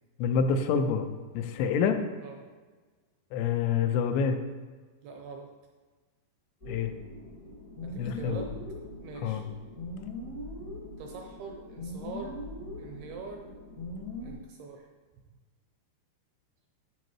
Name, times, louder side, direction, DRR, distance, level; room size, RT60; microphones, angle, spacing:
voice 1, 0.2-1.0 1.3-2.0 3.3-4.4 6.7-6.9 8.0-8.4 9.2-9.4, left 6 dB, 90° left, 7 dB, 3.0 m, -27 dB
voice 2, 2.2-2.5 5.0-5.5 7.8-8.5 9.0-9.9 11.0-12.4 12.8-13.5 14.2-14.9, right 4 dB, 85° right, 2 dB, 2.3 m, -43 dB
sound 1, 6.6-14.3, left 1 dB, 65° left, 0.9 m, -41 dB
10.5 x 8.5 x 3.1 m, 1.4 s
omnidirectional pair, 5.1 m